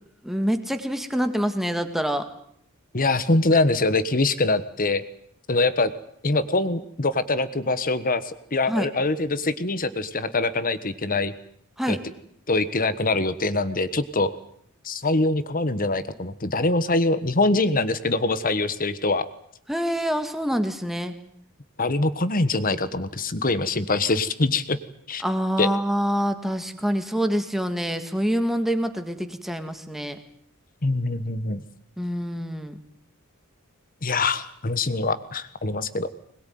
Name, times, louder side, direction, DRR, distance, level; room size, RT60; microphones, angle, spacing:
voice 1, 0.2-2.3 8.7-8.9 11.8-12.0 19.7-21.1 25.2-30.2 32.0-32.8, equal, ahead, 7 dB, 1.9 m, -26 dB
voice 2, 2.9-5.0 5.5-5.9 6.2-11.3 11.9-12.0 12.5-14.3 14.8-19.2 21.8-24.8 25.1-25.2 25.6-25.7 30.8-31.6 34.0-36.1, left 2 dB, 40° left, 13 dB, 1.3 m, -24 dB
21.5 x 21.5 x 9.4 m, 0.68 s
head